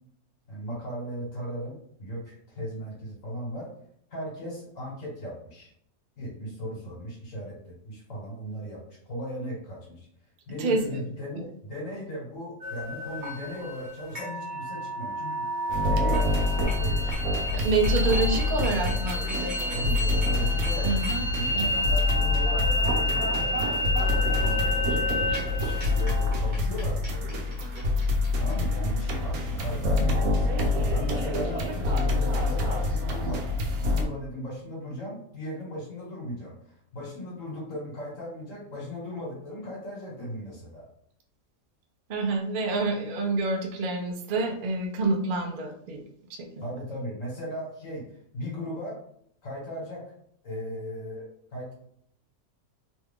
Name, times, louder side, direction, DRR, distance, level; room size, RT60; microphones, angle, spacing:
voice 1, 0.5-3.7 4.1-5.7 6.2-10.1 10.5-17.2 19.7-21.0 21.3-23.6 24.4-24.6 25.9-27.6 28.3-30.6 30.9-40.9 46.6-49.0 49.4-50.1 50.4-51.3 51.5-51.7, equal, 60° left, -3 dB, 1.5 m, -37 dB
voice 2, 10.6-11.0 11.4-11.5 17.5-19.9 20.8-21.2 21.5-21.7 42.1-46.0 46.3-46.7, right 3 dB, 65° right, 2 dB, 0.5 m, -28 dB
sound 1, 12.6-28.5, left 1 dB, 35° right, 1.1 m, -31 dB
sound 2, 15.7-34.0, left 2 dB, 80° right, 1.1 m, -26 dB
3.1 x 2.3 x 3.5 m, 0.67 s
omnidirectional pair, 1.6 m